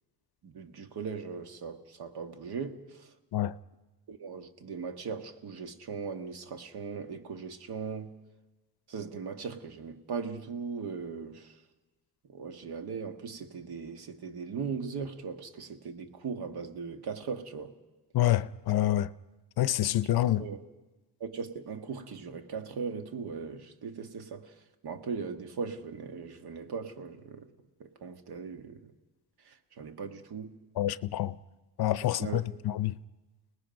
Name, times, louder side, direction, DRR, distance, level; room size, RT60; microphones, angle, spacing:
voice 1, 0.4-3.1 4.1-8.1 8.9-11.6 12.3-17.7 19.9-20.0 20.3-20.6 21.2-24.5 24.8-27.5 27.8-28.8 29.4-30.6 32.2-32.5, right 5 dB, 65° right, 1.7 m, -39 dB
voice 2, 18.1-19.1 19.6-20.4 30.8-31.4 31.8-33.0, left 13 dB, 60° left, 0.6 m, -27 dB
30.0 x 19.5 x 5.2 m
cardioid pair, 130°, 42 cm